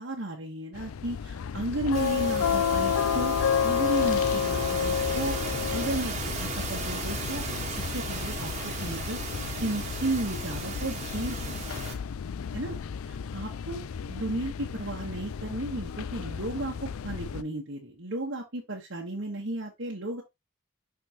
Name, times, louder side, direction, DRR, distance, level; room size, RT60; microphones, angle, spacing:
voice 1, 0.0-3.4 3.6-5.4 5.7-6.1 6.4-7.4 7.7-9.2 9.6-11.7 12.5-12.7 13.3-20.2, right 1 dB, 65° right, 1.4 m, -34 dB
sound 1, 0.7-17.4, left 7 dB, 90° left, 0.4 m, -31 dB
sound 2, 1.9-11.9, right 3 dB, 35° right, 1.6 m, -36 dB
5.9 x 5.7 x 3.0 m
head